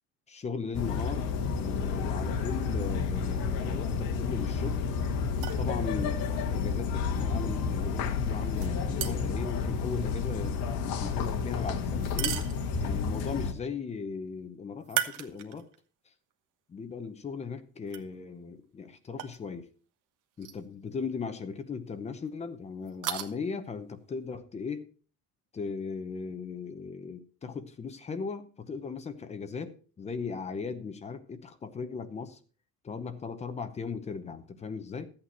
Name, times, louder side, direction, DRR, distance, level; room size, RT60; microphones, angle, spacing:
voice 1, 0.3-4.8 5.6-6.2 6.5-12.4 12.8-15.7 16.7-19.7 20.4-24.9 25.5-32.4 32.8-35.1, left 5 dB, 15° left, 9 dB, 0.8 m, -37 dB
sound 1, 0.7-13.5, left 5 dB, 60° left, 1.6 m, -30 dB
sound 2, 5.3-5.7 8.6-9.4 12.0-13.0 14.8-15.8 16.3-16.4 17.9-18.0 19.2-19.4 20.4-20.6 20.9-21.0 22.9-23.3, right 12 dB, 55° right, 1.3 m, -35 dB
13.0 x 8.8 x 4.5 m, 0.40 s
cardioid pair, 175°, 38 cm